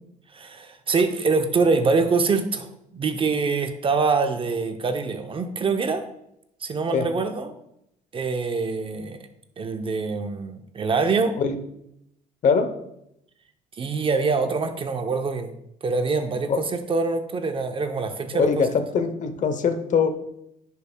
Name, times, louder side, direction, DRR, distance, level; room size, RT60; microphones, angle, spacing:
voice 1, 0.3-6.0 6.6-7.5 8.1-9.2 9.6-11.4 13.8-15.5 15.8-18.7, right 4 dB, 30° right, 7 dB, 0.6 m, -24 dB
voice 2, 18.3-20.1, left 5 dB, 45° left, 9 dB, 0.8 m, -22 dB
10.5 x 5.4 x 2.2 m, 0.80 s
cardioid pair, 110°, 17 cm